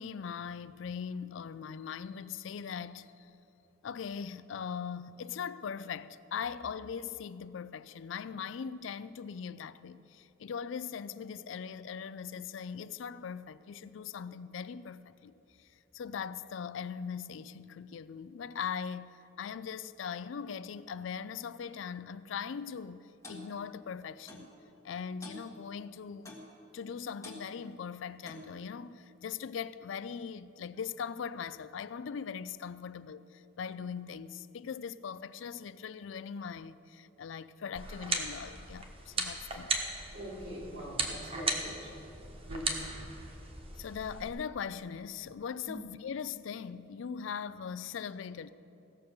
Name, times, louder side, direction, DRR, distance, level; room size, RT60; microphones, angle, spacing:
voice 1, 0.0-3.3 3.8-15.3 15.6-24.5 24.8-26.4 26.7-39.7 43.8-48.5, left 7 dB, 70° left, 0.4 m, -40 dB
Clock, 23.2-23.5 24.3-24.5 25.2-25.5 26.3-26.5 27.2-27.4 28.2-28.5, left 2 dB, 15° left, 1.6 m, -46 dB
sound 1, 37.7-44.3, right 3 dB, 30° right, 1.0 m, -37 dB
voice 2, 40.1-41.9 42.4-42.9 45.7-45.8, equal, 70° right, 3.5 m, -42 dB
16.0 x 6.8 x 6.8 m
head